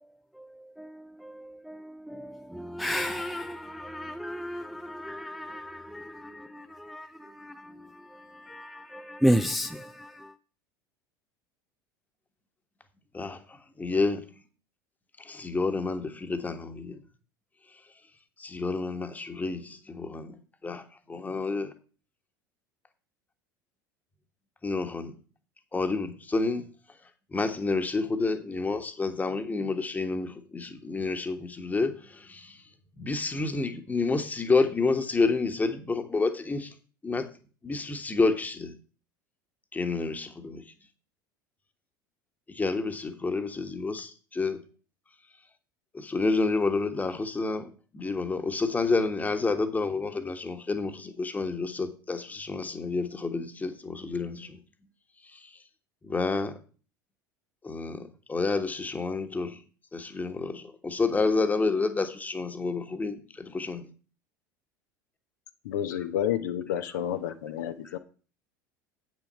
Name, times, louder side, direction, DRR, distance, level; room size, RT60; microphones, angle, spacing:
voice 1, 0.8-10.3, equal, ahead, 0.5 m, -33 dB
voice 2, 13.1-14.3 15.2-17.0 18.4-21.7 24.6-25.2 25.7-26.7 27.3-32.6 33.0-36.7 37.0-37.3 37.6-38.7 39.7-40.6 42.5-44.6 45.9-54.6 55.3-55.5 56.0-56.6 57.6-59.6 59.9-63.9 67.8-67.9, left 3 dB, 15° left, 1.4 m, -29 dB
voice 3, 65.6-68.0, left 10 dB, 65° left, 0.9 m, -30 dB
8.4 x 6.3 x 5.6 m
figure-of-eight pair, 70°, 11 cm